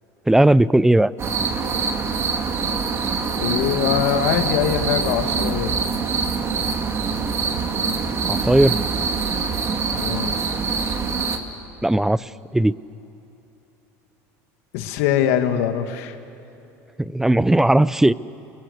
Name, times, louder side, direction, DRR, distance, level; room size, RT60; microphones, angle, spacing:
voice 1, 0.3-1.1 8.3-8.8 11.8-12.2 12.5-12.8 17.0-18.1, right 1 dB, 5° right, 19 dB, 0.5 m, -17 dB
sound 1, 1.2-11.4, right 5 dB, 35° right, 2.5 m, -24 dB
voice 2, 3.4-5.8 10.0-10.4 14.7-16.2, left 10 dB, 80° left, 7 dB, 2.0 m, -22 dB
29.0 x 22.5 x 8.2 m, 3.0 s
supercardioid pair, 110°, 8 cm